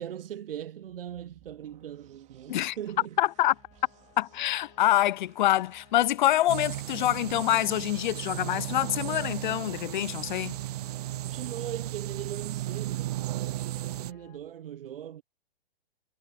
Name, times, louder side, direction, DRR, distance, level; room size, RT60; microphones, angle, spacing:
voice 1, 0.0-3.2 11.2-15.2, right 10 dB, 70° right, 0.8 m, -40 dB
sound 1, 0.8-14.5, right 13 dB, 25° right, 3.0 m, -61 dB
voice 2, 3.2-3.5 4.2-10.6, left 14 dB, 55° left, 0.4 m, -26 dB
sound 2, 3.2-14.4, left 26 dB, 35° left, 2.4 m, -59 dB
sound 3, 6.5-14.1, right 15 dB, 45° right, 0.4 m, -35 dB
hypercardioid pair, 125°, 30 cm